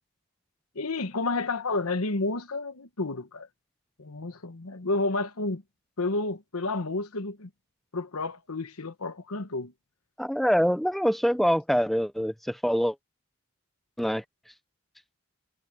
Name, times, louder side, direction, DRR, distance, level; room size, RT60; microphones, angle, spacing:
voice 1, 0.7-3.5 4.0-5.6 6.0-7.5 7.9-9.7, left 3 dB, 85° left, 1.2 m, -30 dB
voice 2, 10.2-12.9 14.0-14.2, equal, ahead, 0.5 m, -25 dB
head